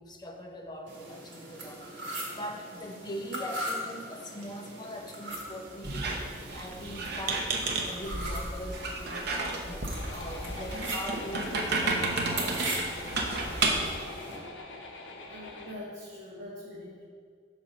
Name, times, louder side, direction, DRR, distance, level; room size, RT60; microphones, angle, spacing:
voice 1, 0.0-6.2 6.5-14.1, equal, 20° left, 2 dB, 0.6 m, -42 dB
sound 1, 0.9-14.4, right 1 dB, 75° right, 1.6 m, -40 dB
Squeak, 5.8-14.0, right 3 dB, 60° right, 0.8 m, -32 dB
sound 2, 9.9-15.7, left 3 dB, 70° left, 0.7 m, -43 dB
voice 2, 15.3-17.0, left 1 dB, 40° right, -9 dB, 1.3 m, -43 dB
6.3 x 4.0 x 4.9 m, 2.1 s
head